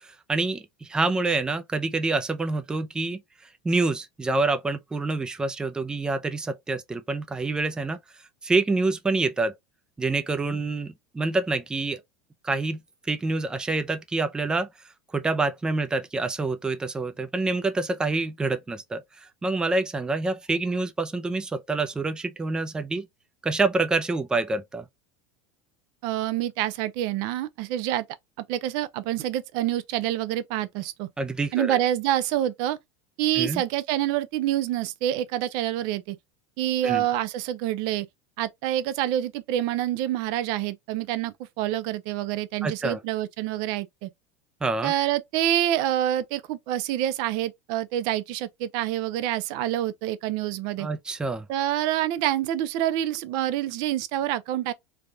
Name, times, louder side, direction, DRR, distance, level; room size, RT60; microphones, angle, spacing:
voice 1, 0.0-3.2 3.6-8.0 8.4-9.5 10.0-12.0 12.4-12.8 13.1-14.7 15.1-19.0 19.4-23.1 23.4-24.8 31.2-31.8 33.4-33.6 36.8-37.0 42.6-43.0 44.6-44.9 50.8-51.5, right 3 dB, 10° right, 0.4 m, -27 dB
voice 2, 26.0-28.0 28.5-31.1 31.5-32.8 33.2-36.2 36.6-38.1 38.4-44.1 44.8-50.9 51.5-54.7, right 12 dB, 60° right, 0.6 m, -27 dB
3.4 x 2.3 x 3.9 m
supercardioid pair, 135°, 8 cm